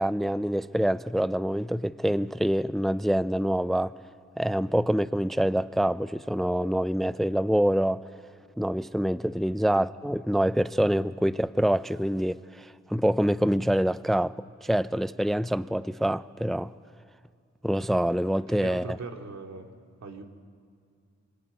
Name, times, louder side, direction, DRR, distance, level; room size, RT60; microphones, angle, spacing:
voice 1, 0.0-3.9 4.4-8.0 8.6-16.7 17.6-19.0, equal, ahead, 0.6 m, -26 dB
voice 2, 18.5-19.7 20.0-20.2, right 4 dB, 65° right, 2.8 m, -39 dB
24.5 x 23.5 x 9.3 m
cardioid pair, 50°, 29 cm